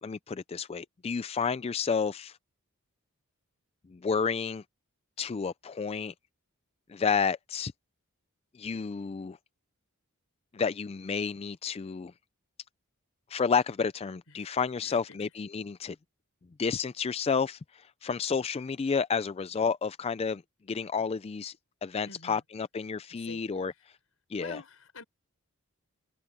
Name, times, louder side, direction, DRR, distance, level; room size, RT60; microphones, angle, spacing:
voice 1, 0.0-2.4 3.9-4.6 5.2-6.1 6.9-7.7 8.6-9.4 10.5-12.1 13.3-16.0 16.6-20.4 20.7-21.5 21.8-23.7 24.3-24.6, left 5 dB, 30° left, 0.3 m, -30 dB
voice 2, 14.3-15.3 22.0-22.4 23.1-23.9 24.4-25.0, left 3 dB, 70° left, 6.2 m, -49 dB
head